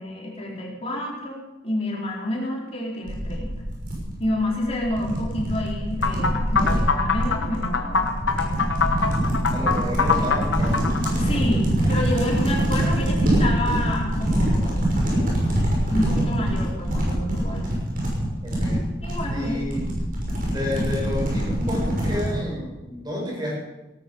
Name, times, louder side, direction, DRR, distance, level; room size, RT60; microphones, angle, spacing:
voice 1, 0.0-3.5 4.2-8.1 8.4-9.1 11.1-14.9 15.9-17.8 19.0-19.8, left 1 dB, 35° left, -3 dB, 4.4 m, -29 dB
sound 1, 3.1-22.4, right 1 dB, 45° right, 6.0 m, -24 dB
sound 2, 6.0-11.1, left 5 dB, 80° left, 1.6 m, -23 dB
voice 2, 9.5-10.8 18.4-18.8 19.3-19.8 20.4-23.5, left 1 dB, 25° right, -4 dB, 7.6 m, -30 dB
18.0 x 13.0 x 5.6 m, 1.0 s
head